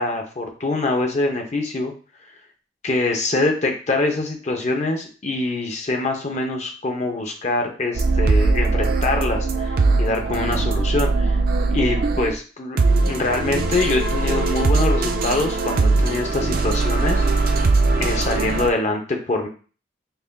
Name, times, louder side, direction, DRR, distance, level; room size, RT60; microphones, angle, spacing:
voice 1, 0.0-1.9 2.8-11.4 11.7-17.6 17.9-19.5, left 2 dB, 40° left, 3 dB, 0.6 m, -24 dB
sound 1, 7.9-12.4 12.8-18.7, right 3 dB, 50° right, 0.4 m, -20 dB
5.4 x 2.5 x 2.2 m, 0.37 s
head